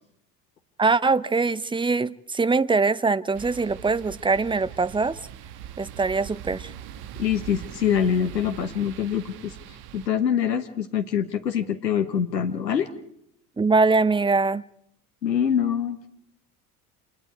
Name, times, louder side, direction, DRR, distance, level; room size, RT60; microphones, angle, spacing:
voice 1, 0.8-5.2 5.8-6.7 13.6-14.6, right 4 dB, 10° right, 0.7 m, -22 dB
sound 1, 3.3-10.1, right 10 dB, 50° right, 1.4 m, -41 dB
voice 2, 7.2-9.6 9.9-12.9 15.2-16.1, left 8 dB, 85° left, 1.2 m, -24 dB
28.0 x 21.0 x 4.7 m
figure-of-eight pair, 65°, 48 cm